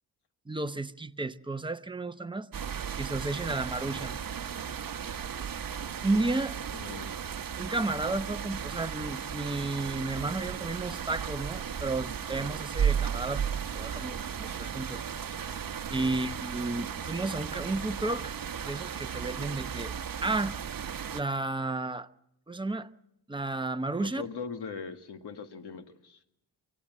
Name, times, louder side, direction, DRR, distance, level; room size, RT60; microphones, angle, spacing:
voice 1, 0.5-2.5 3.0-4.2 6.0-6.6 7.6-15.0 15.9-18.3 18.6-19.9 20.2-20.5 21.1-22.1 22.5-22.9 23.3-24.2, right 2 dB, 10° right, 0.8 m, -32 dB
sound 1, 2.5-21.2, right 8 dB, 50° right, 1.1 m, -35 dB
voice 2, 6.7-7.1 16.0-16.2 24.0-26.2, left 5 dB, 65° left, 1.9 m, -40 dB
25.0 x 16.0 x 7.5 m
cardioid pair, 75°, 43 cm